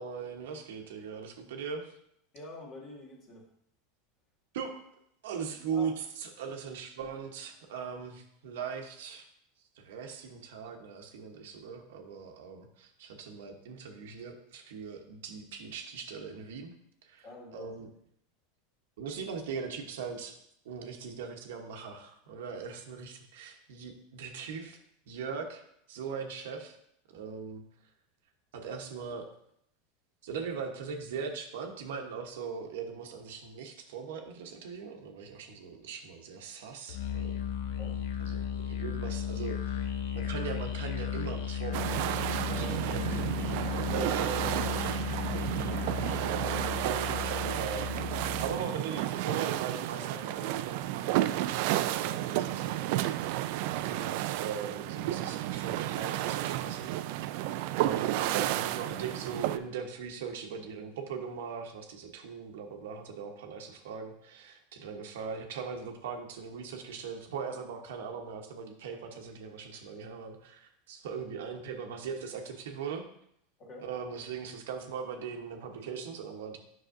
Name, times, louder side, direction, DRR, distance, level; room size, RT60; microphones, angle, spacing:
voice 1, 0.0-1.9 4.5-4.8 5.2-9.3 9.8-16.7 17.0-17.3 17.5-17.9 19.0-20.4 20.6-24.8 25.1-25.6 25.9-26.8 27.1-27.6 28.5-29.3 30.2-37.3 38.2-38.4 38.7-42.7 43.1-43.2 43.9-44.9 45.3-45.5 45.8-47.9 48.4-53.2 53.7-57.4 57.8-73.0 73.8-76.6, right 6 dB, 80° right, 4 dB, 1.0 m, -40 dB
voice 2, 2.3-3.5 5.5-5.9 17.2-17.7 37.8-38.0 42.4-43.3 44.9-45.0 57.4-57.7 73.6-73.9, left 1 dB, 40° left, -1 dB, 2.1 m, -46 dB
Musical instrument, 36.9-48.6, left 8 dB, 75° left, 0.7 m, -35 dB
sound 1, 41.7-59.6, right 14 dB, 65° right, 0.3 m, -32 dB
7.7 x 5.8 x 2.6 m, 0.71 s
supercardioid pair, 115°, 0 cm